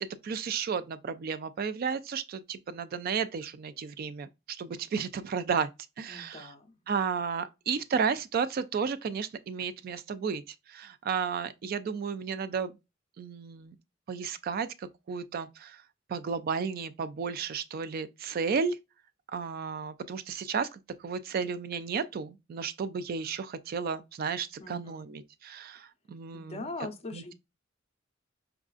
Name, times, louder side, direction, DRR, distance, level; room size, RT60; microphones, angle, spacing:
voice 1, 0.0-5.7 6.0-6.5 6.9-12.8 13.2-13.7 14.1-15.8 16.1-18.8 19.3-26.7 27.1-27.3, right 6 dB, 50° right, 0.3 m, -33 dB
voice 2, 6.1-6.8 24.6-25.1 26.3-27.3, left 2 dB, 35° left, 0.6 m, -41 dB
4.5 x 2.4 x 2.3 m
head